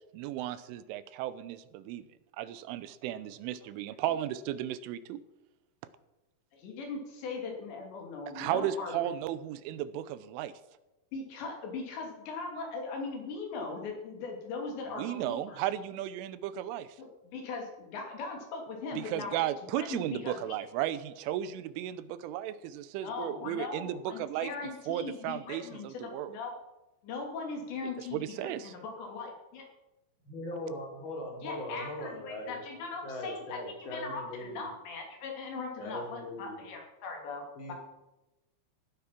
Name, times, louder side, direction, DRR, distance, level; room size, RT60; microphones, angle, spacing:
voice 1, 0.1-2.0 2.4-5.2 8.4-10.5 14.9-16.9 19.0-26.4 28.0-28.7, right 12 dB, 80° right, 14 dB, 3.2 m, -35 dB
voice 2, 6.5-9.0 11.1-15.6 17.0-19.4 19.7-20.5 23.0-26.6 27.0-29.6 31.4-37.7, left 4 dB, 65° left, 2 dB, 4.9 m, -40 dB
voice 3, 30.3-32.6 33.0-34.7 35.8-36.7 37.6-37.7, left 1 dB, 25° left, 1 dB, 3.8 m, -40 dB
16.5 x 11.5 x 6.0 m, 1.0 s
omnidirectional pair, 5.7 m